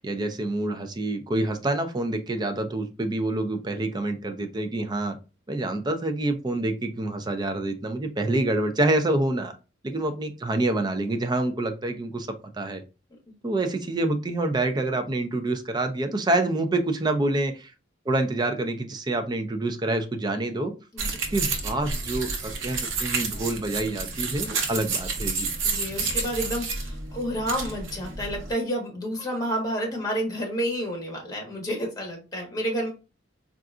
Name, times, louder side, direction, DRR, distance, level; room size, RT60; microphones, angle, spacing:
voice 1, 0.0-5.2 5.5-9.5 9.8-12.3 12.6-12.8 13.4-17.7 18.1-20.7 21.3-25.5, right 2 dB, 20° right, 7 dB, 0.4 m, -27 dB
sound 1, 21.0-28.5, right 4 dB, 85° right, 0.7 m, -30 dB
voice 2, 25.6-32.9, equal, 20° left, 0 dB, 1.1 m, -30 dB
3.8 x 2.4 x 2.4 m, 0.30 s
head